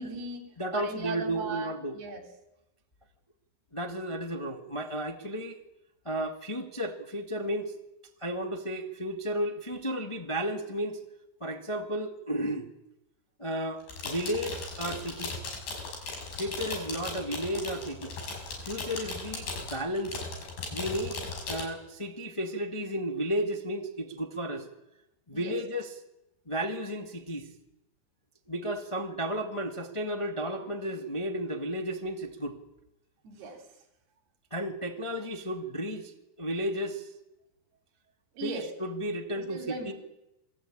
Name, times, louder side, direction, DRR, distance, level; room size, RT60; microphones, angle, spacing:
voice 1, 0.0-0.5 0.7-2.3 25.3-25.6 33.2-33.6 38.4-38.7 39.4-39.9, right 3 dB, 90° right, 4 dB, 5.5 m, -38 dB
voice 2, 0.6-2.0 3.7-5.6 6.0-7.7 8.2-11.0 11.4-12.7 13.4-15.4 16.4-18.1 18.6-20.2 20.7-21.2 21.5-24.7 25.3-25.9 26.4-27.5 28.5-32.6 34.5-36.1 36.4-37.1 38.4-39.9, equal, 50° left, 4 dB, 0.3 m, -33 dB
sound 1, 13.8-21.6, left 3 dB, 80° left, 7.9 m, -37 dB
28.0 x 20.5 x 8.7 m, 0.93 s
omnidirectional pair, 4.4 m